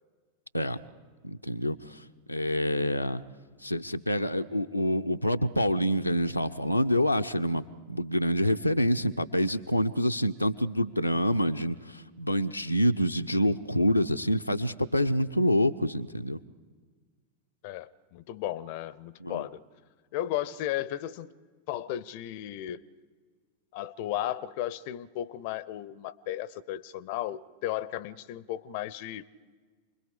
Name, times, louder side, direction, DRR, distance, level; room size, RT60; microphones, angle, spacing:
voice 1, 1.2-2.0 2.3-3.2 3.6-16.4 19.2-19.4, equal, 90° left, 5 dB, 0.5 m, -27 dB
voice 2, 17.6-19.6 20.1-21.3 21.7-22.8 23.7-29.3, left 13 dB, 45° left, 21 dB, 0.6 m, -35 dB
28.5 x 21.5 x 5.0 m, 1.5 s
figure-of-eight pair, 90°, 0 cm